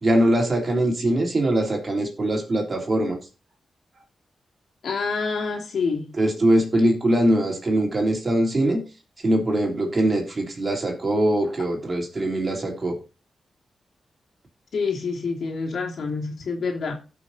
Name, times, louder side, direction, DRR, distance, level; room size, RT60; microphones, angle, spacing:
voice 1, 0.0-3.2 6.2-8.8 9.2-12.9, right 1 dB, 45° right, 3.5 m, -22 dB
voice 2, 4.8-6.1 14.7-16.9, left 4 dB, 75° left, 2.7 m, -27 dB
17.0 x 6.1 x 2.7 m
cardioid pair, 75°, 0 cm